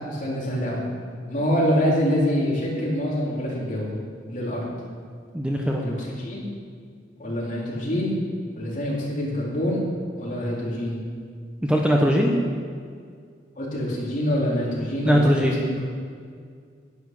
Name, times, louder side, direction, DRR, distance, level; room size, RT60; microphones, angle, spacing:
voice 1, 0.1-0.8 1.3-4.0 4.3-4.7 5.8-6.4 7.2-8.2 8.5-9.9 10.2-11.0 13.6-15.7, equal, 45° left, -5 dB, 3.6 m, -25 dB
voice 2, 5.3-5.8 11.6-12.3 15.0-15.5, equal, 5° right, -1 dB, 1.0 m, -20 dB
11.0 x 9.8 x 6.1 m, 2.1 s
head